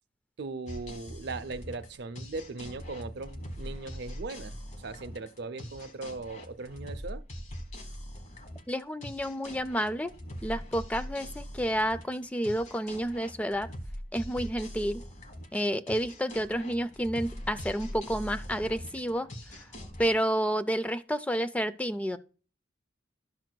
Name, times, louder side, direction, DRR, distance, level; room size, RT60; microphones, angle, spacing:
voice 1, 0.4-7.2, right 3 dB, 65° right, 0.5 m, -39 dB
sound 1, 0.7-20.2, equal, 40° left, 1.1 m, -42 dB
voice 2, 8.7-10.1 10.4-13.7 14.1-15.0 15.5-19.3 20.0-22.2, equal, 10° left, 0.3 m, -30 dB
12.0 x 6.1 x 2.2 m
head